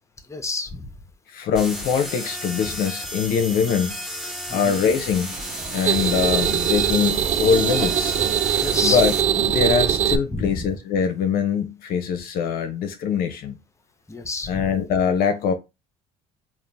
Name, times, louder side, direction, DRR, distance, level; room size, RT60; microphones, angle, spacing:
voice 1, 0.3-0.9 4.5-4.8 8.5-9.0 10.3-10.7 14.1-14.7, left 3 dB, 15° left, 0.9 m, -29 dB
voice 2, 1.3-3.9 4.5-5.3 5.7-8.2 8.8-13.6 14.5-15.5, left 7 dB, 60° left, 0.7 m, -23 dB
sound 1, 1.5-9.2, equal, ahead, 1.3 m, -33 dB
sound 2, 5.3-10.2, right 9 dB, 40° right, 0.5 m, -22 dB
3.8 x 2.5 x 3.4 m
hypercardioid pair, 60°, 17 cm